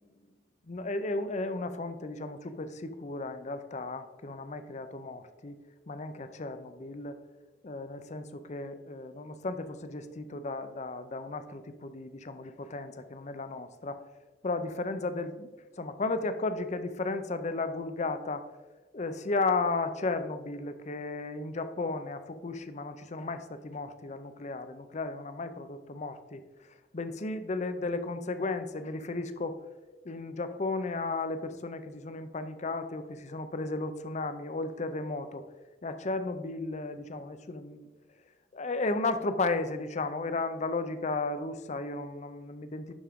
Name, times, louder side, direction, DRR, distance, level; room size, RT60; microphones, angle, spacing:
voice 1, 0.7-5.5 5.9-7.2 7.6-14.0 14.4-15.5 15.8-18.4 18.9-26.4 26.9-29.6 30.0-35.4 35.8-37.9 38.5-43.0, left 3 dB, 40° left, 10 dB, 0.6 m, -34 dB
11.5 x 4.9 x 3.6 m, 1.2 s
head